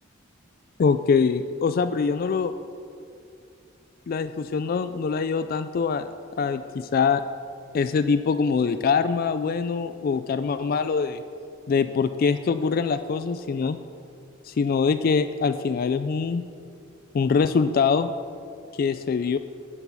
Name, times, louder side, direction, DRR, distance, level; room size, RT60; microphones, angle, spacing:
voice 1, 0.8-2.5 4.1-6.1 6.4-7.2 7.7-11.2 11.7-13.8 14.4-16.4 17.1-18.1 18.8-19.4, left 5 dB, 45° left, 11 dB, 0.3 m, -23 dB
9.7 x 7.0 x 7.0 m, 2.5 s
head